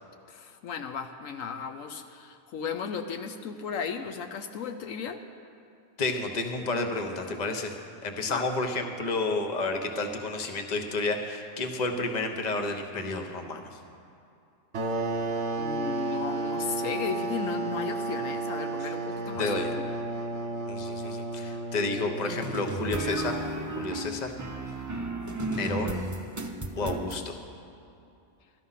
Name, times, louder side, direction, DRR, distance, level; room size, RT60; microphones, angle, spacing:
voice 1, 0.3-5.2 8.3-8.5 15.6-19.9, left 6 dB, 80° left, 6 dB, 1.1 m, -35 dB
voice 2, 6.0-7.7 8.0-13.8 18.8-18.9 19.4-19.7 20.7-24.3 24.7-24.8 25.5-26.0 26.8-27.4, left 3 dB, 35° left, 5 dB, 1.0 m, -31 dB
sound 1, 14.7-23.1, right 2 dB, 60° right, 1.3 m, -32 dB
sound 2, 22.3-27.2, right 2 dB, 20° right, 0.6 m, -33 dB
14.0 x 12.5 x 5.7 m, 2.6 s
omnidirectional pair, 1.4 m